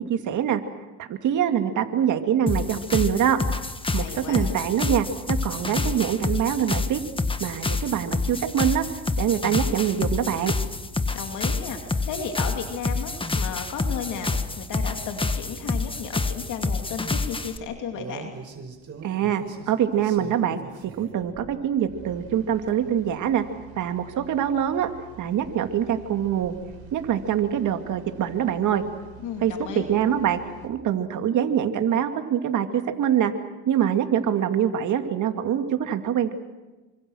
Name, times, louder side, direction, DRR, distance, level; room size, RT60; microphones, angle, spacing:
voice 1, 0.1-0.6 1.0-3.4 3.9-7.0 7.4-8.8 9.2-10.5 19.0-23.4 23.8-24.9 25.2-26.6 26.9-28.8 29.4-33.3 33.7-36.3, right 9 dB, 80° right, 7 dB, 2.5 m, -24 dB
sound 1, 2.5-17.6, left 3 dB, 15° left, 1.6 m, -28 dB
voice 2, 4.0-4.6 11.1-18.3 29.2-29.9, left 6 dB, 85° left, 4 dB, 2.6 m, -34 dB
sound 2, 17.6-30.7, right 6 dB, 50° right, 5.1 m, -45 dB
28.5 x 25.0 x 6.4 m, 1.2 s
cardioid pair, 90°, 30 cm